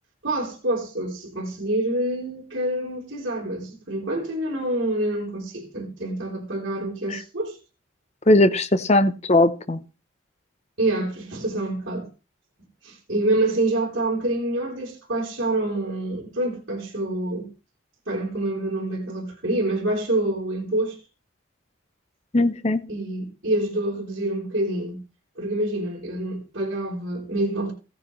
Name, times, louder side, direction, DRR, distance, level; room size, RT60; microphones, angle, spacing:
voice 1, 0.2-7.6 10.8-12.1 12.8-17.5 18.1-21.0 22.9-25.0 25.4-27.7, right 1 dB, 60° right, 3.5 m, -27 dB
voice 2, 8.3-9.8 22.3-22.8, left 2 dB, 35° left, 0.8 m, -19 dB
16.5 x 9.7 x 3.2 m
head